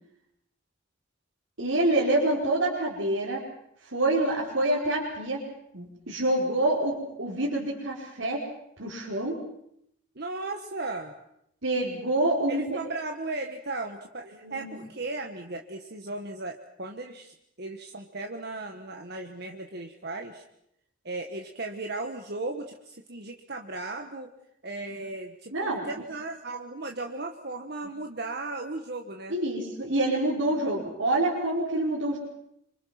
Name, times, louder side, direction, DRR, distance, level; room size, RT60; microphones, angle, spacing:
voice 1, 1.6-3.4 3.9-5.4 5.7-8.4 8.8-9.4 11.6-12.6 14.4-14.8 25.5-25.8 29.3-32.2, right 1 dB, 90° right, -6 dB, 5.2 m, -26 dB
voice 2, 10.2-11.1 12.5-20.4 21.1-24.3 24.6-29.4, right 2 dB, 55° right, 3 dB, 1.6 m, -36 dB
27.5 x 26.0 x 6.0 m, 0.75 s
head